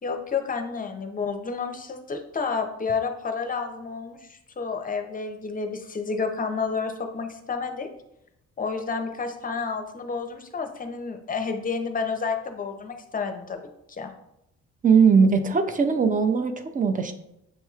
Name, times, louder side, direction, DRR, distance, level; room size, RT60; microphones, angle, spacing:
voice 1, 0.0-7.9 8.6-13.6 13.9-14.1, left 5 dB, 30° left, 6 dB, 0.6 m, -30 dB
voice 2, 14.8-17.1, right 5 dB, 25° right, 8 dB, 0.5 m, -20 dB
7.1 x 2.9 x 2.4 m, 0.82 s
cardioid pair, 90°, 30 cm